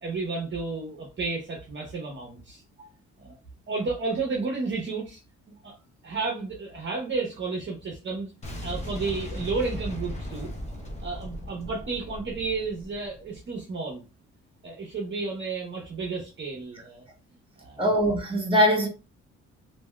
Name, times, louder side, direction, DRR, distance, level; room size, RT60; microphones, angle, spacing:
voice 1, 0.0-2.6 3.2-3.4 3.7-5.2 5.6-5.8 6.0-8.3 8.6-10.5 11.0-14.0 14.6-17.0 17.6-17.8, right 4 dB, 40° right, 0.8 m, -32 dB
Boom, 8.4-13.3, left 1 dB, 25° left, 0.8 m, -37 dB
voice 2, 17.8-18.9, equal, 15° right, 1.2 m, -22 dB
3.3 x 2.7 x 2.2 m
cardioid pair, 90°, 30 cm